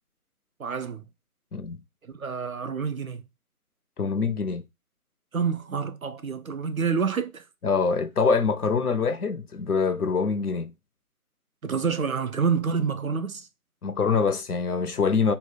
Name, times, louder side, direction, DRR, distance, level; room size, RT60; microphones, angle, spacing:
voice 1, 0.6-1.0 2.1-3.2 5.3-7.4 11.6-13.5, right 6 dB, 65° right, 0.6 m, -28 dB
voice 2, 4.0-4.6 7.6-10.7 13.8-15.3, left 5 dB, 75° left, 0.7 m, -24 dB
3.2 x 2.3 x 4.2 m
figure-of-eight pair, 160°, 45 cm